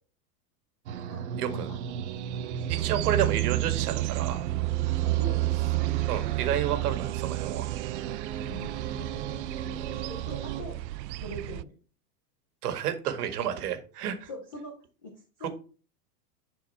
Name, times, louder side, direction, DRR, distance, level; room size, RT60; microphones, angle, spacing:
sound 1, 0.9-10.6, right 8 dB, 45° right, 0.8 m, -36 dB
voice 1, 1.4-1.8 2.7-4.4 6.1-7.7 12.6-14.3 15.4-15.5, right 9 dB, 65° right, 7 dB, 1.8 m, -30 dB
voice 2, 2.6-3.3 5.0-5.5 8.5-10.8 11.2-11.7 14.2-15.5, left 1 dB, 15° left, 0 dB, 0.4 m, -43 dB
sound 2, 2.7-11.6, right 20 dB, 85° right, 0.6 m, -30 dB
10.5 x 4.7 x 4.2 m, 0.38 s
supercardioid pair, 175°, 49 cm